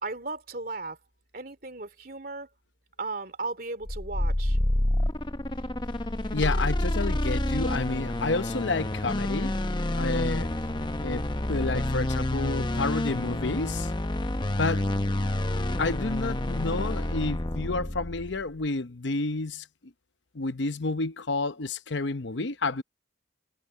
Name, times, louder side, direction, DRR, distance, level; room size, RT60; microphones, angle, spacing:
voice 1, 0.0-1.0 1.3-2.5 3.0-4.6, right 3 dB, 50° right, 3.1 m, -36 dB
sound 1, 3.8-18.4, left 1 dB, 25° left, 0.8 m, -28 dB
voice 2, 6.3-9.5 10.0-10.5 11.0-13.9 14.6-14.9 15.8-19.6 20.3-22.8, left 3 dB, 75° left, 0.9 m, -30 dB
head